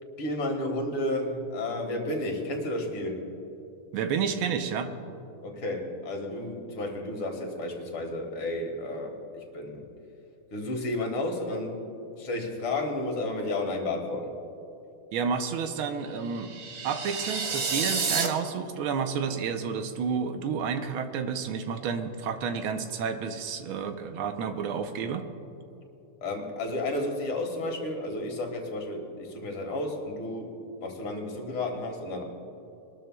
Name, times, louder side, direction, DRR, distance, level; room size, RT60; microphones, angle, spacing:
voice 1, 0.2-3.2 5.4-9.9 10.5-14.3 26.2-32.2, left 1 dB, 80° left, 2 dB, 2.5 m, -32 dB
voice 2, 3.9-4.9 15.1-25.3, right 6 dB, 80° right, 7 dB, 1.6 m, -30 dB
sound 1, 16.2-18.3, right 5 dB, 50° right, 1.3 m, -30 dB
22.5 x 13.0 x 2.3 m, 2.9 s
omnidirectional pair, 2.3 m